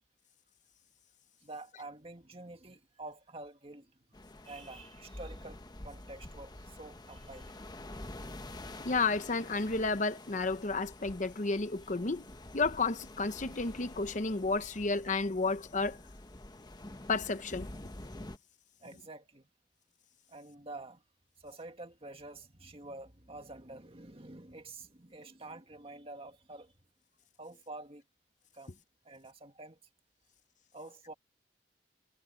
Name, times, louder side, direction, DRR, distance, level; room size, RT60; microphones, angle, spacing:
voice 1, 1.4-3.9 4.4-7.6 18.8-19.5 20.3-21.0 21.4-26.7 27.4-28.0 28.5-29.8 30.7-31.1, right 2 dB, 30° right, 2.0 m, -48 dB
sound 1, 4.1-18.4, left 1 dB, 20° left, 1.1 m, -48 dB
voice 2, 8.8-12.2 12.5-16.0 17.1-17.7, left 3 dB, 45° left, 0.8 m, -31 dB
head